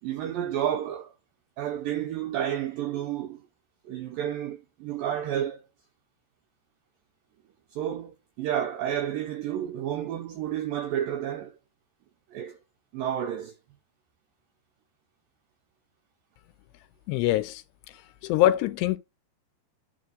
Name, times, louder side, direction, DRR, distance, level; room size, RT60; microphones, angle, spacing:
voice 1, 0.0-1.1 1.6-3.4 3.9-5.6 7.7-11.6 12.3-12.6 12.9-13.5, right 10 dB, 90° right, 2.0 m, -31 dB
voice 2, 17.1-17.6 18.2-19.0, left 14 dB, 85° left, 2.7 m, -23 dB
10.5 x 3.6 x 3.9 m
omnidirectional pair, 5.0 m